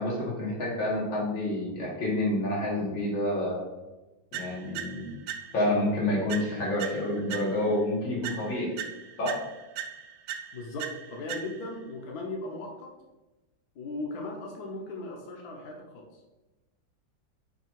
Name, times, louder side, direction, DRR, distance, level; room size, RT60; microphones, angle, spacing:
voice 1, 0.0-3.6 4.3-5.1 5.5-8.7 9.2-9.3, left 1 dB, 85° left, -4 dB, 2.7 m, -28 dB
sound 1, 4.3-5.8 6.3-7.8 8.2-11.8, right 9 dB, 80° right, 1.3 m, -40 dB
voice 2, 10.5-12.9 13.7-16.2, left 2 dB, 60° left, 0 dB, 1.4 m, -38 dB
5.7 x 4.8 x 4.5 m, 1.1 s
omnidirectional pair, 2.1 m